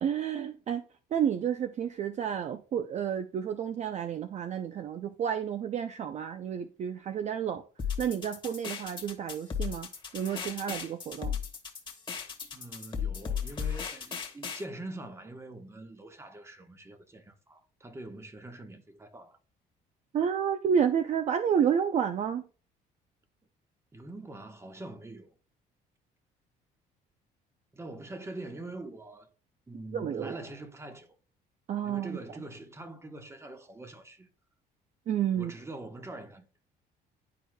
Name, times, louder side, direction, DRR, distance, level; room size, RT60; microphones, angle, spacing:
voice 1, 0.0-0.8 1.1-7.6 8.0-9.9 10.1-11.4 20.1-22.4 29.9-30.3 31.7-32.2 35.1-35.5, right 8 dB, 45° right, 0.5 m, -30 dB
sound 1, 7.8-14.6, left 7 dB, 30° left, 1.5 m, -36 dB
voice 2, 12.5-19.4 23.9-25.3 27.7-29.3 29.7-31.1 31.8-34.3 35.3-36.5, right 2 dB, 15° right, 1.1 m, -44 dB
11.0 x 4.6 x 2.2 m
cardioid pair, 110°, 17 cm